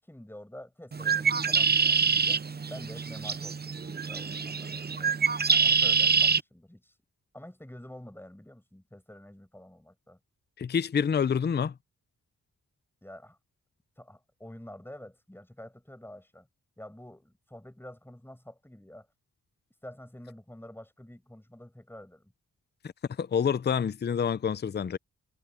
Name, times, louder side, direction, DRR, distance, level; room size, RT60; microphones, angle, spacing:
voice 1, 0.0-6.9 7.3-10.2 13.0-13.4 14.0-16.5 16.8-19.1 19.8-22.3, left 1 dB, 5° left, 7.9 m, -48 dB
Bird, 0.9-6.4, right 5 dB, 30° right, 0.7 m, -25 dB
voice 2, 10.6-11.7 23.2-25.0, left 7 dB, 30° left, 0.5 m, -27 dB
cardioid pair, 80°, 32 cm